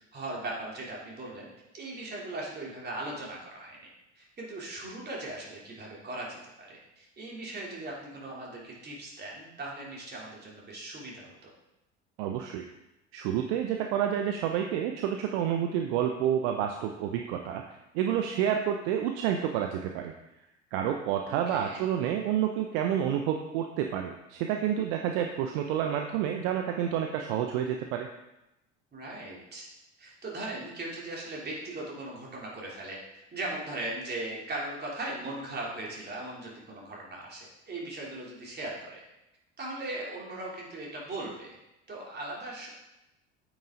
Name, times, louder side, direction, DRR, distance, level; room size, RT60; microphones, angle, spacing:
voice 1, 0.1-1.5 1.7-3.8 4.1-11.3 21.3-21.8 28.9-29.7 30.0-33.0 33.3-39.0 39.6-41.6 41.9-42.7, right 2 dB, 25° right, -4 dB, 3.2 m, -39 dB
voice 2, 12.2-12.6 13.1-20.1 20.7-28.1, right 9 dB, 55° right, 4 dB, 0.8 m, -29 dB
8.7 x 6.2 x 3.8 m, 0.93 s
figure-of-eight pair, 70°, 36 cm